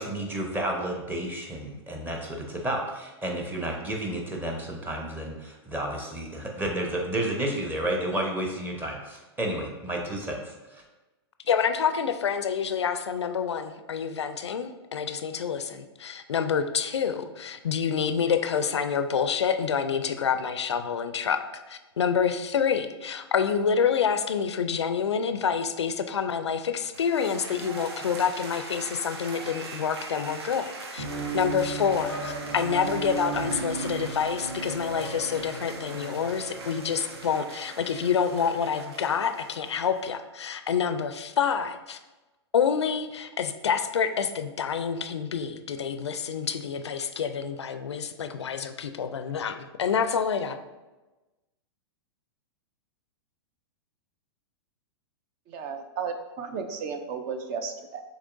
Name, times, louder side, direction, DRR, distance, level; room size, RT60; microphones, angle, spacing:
voice 1, 0.0-10.8, right 1 dB, 15° right, 0 dB, 0.9 m, -31 dB
voice 2, 11.5-31.0 31.3-42.0 42.5-50.6, left 7 dB, 85° left, 9 dB, 0.4 m, -27 dB
sound 1, 26.9-40.2, right 3 dB, 70° right, 0.8 m, -42 dB
Unknown Origin, 31.0-38.3, right 3 dB, 90° right, 1.3 m, -36 dB
voice 3, 55.5-58.0, right 5 dB, 40° right, 6 dB, 0.4 m, -34 dB
6.5 x 3.0 x 2.5 m, 1.1 s
hypercardioid pair, 110°, 14 cm